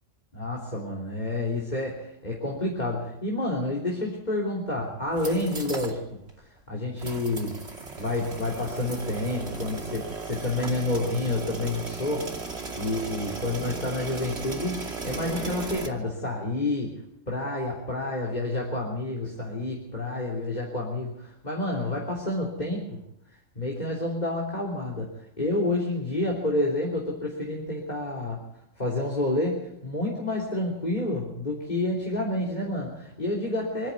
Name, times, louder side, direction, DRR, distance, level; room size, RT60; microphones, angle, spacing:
voice 1, 0.3-6.2 6.7-7.6 8.0-12.3 12.8-16.9 17.3-23.0 23.6-25.1 25.4-28.4 28.8-33.9, left 2 dB, 35° left, -1 dB, 3.5 m, -29 dB
sound 1, 5.0-6.0 6.3-6.4 7.0-15.9, right 4 dB, 55° right, 2.9 m, -36 dB
26.0 x 10.5 x 9.7 m, 0.82 s
omnidirectional pair, 1.3 m